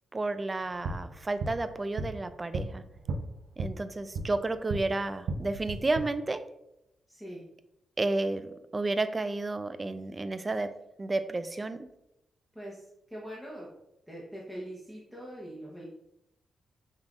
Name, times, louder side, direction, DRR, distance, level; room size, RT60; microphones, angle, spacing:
voice 1, 0.1-2.8 3.6-6.4 8.0-11.9, right 2 dB, 25° right, 12 dB, 0.3 m, -31 dB
sound 1, 0.6-4.9 5.2-6.0, right 3 dB, 80° right, 0.5 m, -36 dB
voice 2, 7.1-7.4 12.5-12.8 13.1-13.7 14.1-15.9, equal, ahead, -5 dB, 0.9 m, -42 dB
5.4 x 3.4 x 2.5 m, 0.84 s
cardioid pair, 85°, 0 cm